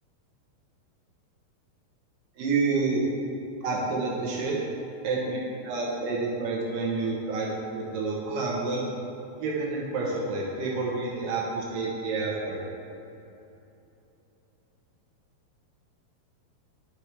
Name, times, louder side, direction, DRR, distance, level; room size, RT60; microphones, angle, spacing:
voice 1, 2.4-3.1 3.6-4.6 5.0-5.4 5.6-7.5 7.8-8.8 9.4-12.6, right 3 dB, 70° right, -3 dB, 2.1 m, -28 dB
12.0 x 5.9 x 3.3 m, 2.9 s
omnidirectional pair, 4.9 m